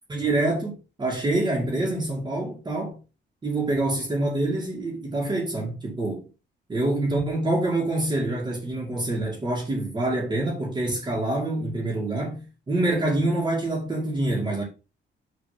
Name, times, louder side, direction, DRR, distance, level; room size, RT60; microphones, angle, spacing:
voice 1, 0.1-3.0 3.4-6.2 6.7-12.4 12.7-14.6, right 2 dB, 25° right, 2.6 m, -26 dB
6.7 x 4.0 x 6.1 m
cardioid pair, 160°, 19 cm